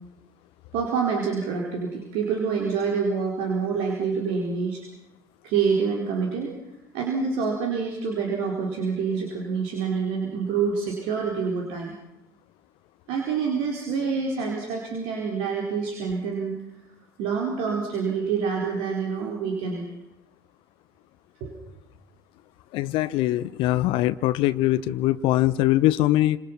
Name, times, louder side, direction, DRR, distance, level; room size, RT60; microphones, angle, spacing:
voice 1, 0.7-4.8 5.4-6.5 6.9-11.9 13.1-16.5 17.2-19.8 21.4-21.6, right 5 dB, 60° right, 0 dB, 4.5 m, -27 dB
voice 2, 22.7-26.4, left 15 dB, 55° left, 16 dB, 0.9 m, -22 dB
29.0 x 26.5 x 6.0 m, 0.88 s
figure-of-eight pair, 60°, 11 cm